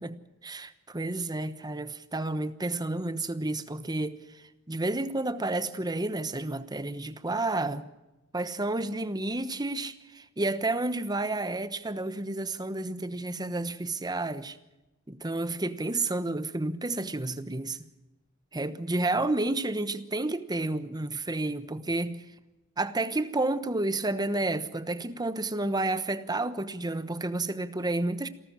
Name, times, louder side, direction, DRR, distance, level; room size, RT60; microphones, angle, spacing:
voice 1, 0.0-7.9 8.3-14.6 15.1-17.9 18.5-22.2 22.8-28.3, right 2 dB, 20° right, 1.1 m, -31 dB
28.0 x 13.0 x 7.5 m
head